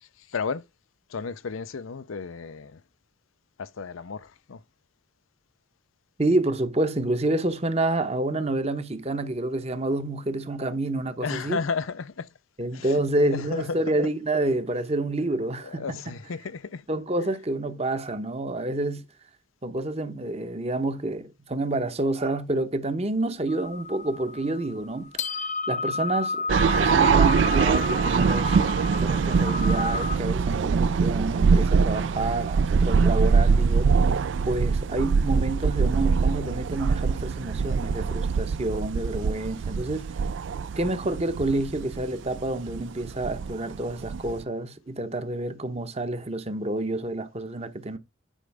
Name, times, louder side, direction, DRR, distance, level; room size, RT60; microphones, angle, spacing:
voice 1, 0.0-0.7 1.1-2.8 3.6-4.6 11.2-12.3 12.7-14.0 15.6-16.9 17.2-17.3, left 5 dB, 90° left, 0.6 m, -33 dB
voice 2, 6.2-11.6 12.6-16.2 16.9-19.1 19.6-25.4 25.7-26.5 26.8-34.0 34.4-40.1 40.8-48.0, right 2 dB, 30° right, 0.9 m, -28 dB
sound 1, 23.5-30.2, left 3 dB, 35° left, 0.6 m, -31 dB
sound 2, 26.5-44.4, right 5 dB, 65° right, 0.4 m, -23 dB
10.0 x 5.1 x 3.4 m
head